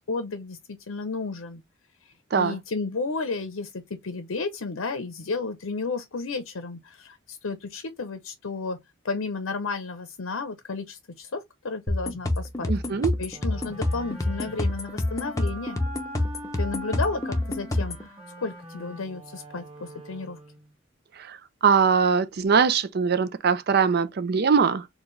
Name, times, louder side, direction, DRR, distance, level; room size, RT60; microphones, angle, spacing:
voice 1, 0.1-1.6 2.0-8.8 9.0-12.7 13.2-15.8 16.6-18.1 18.4-20.4, left 4 dB, 80° left, 0.6 m, -32 dB
sound 1, 11.9-18.1, left 1 dB, 15° left, 0.7 m, -28 dB
voice 2, 12.7-13.1 21.2-21.4 21.6-24.9, right 6 dB, 50° right, 0.5 m, -22 dB
sound 2, 13.3-20.7, right 1 dB, 30° right, 1.5 m, -43 dB
4.4 x 2.3 x 3.1 m
head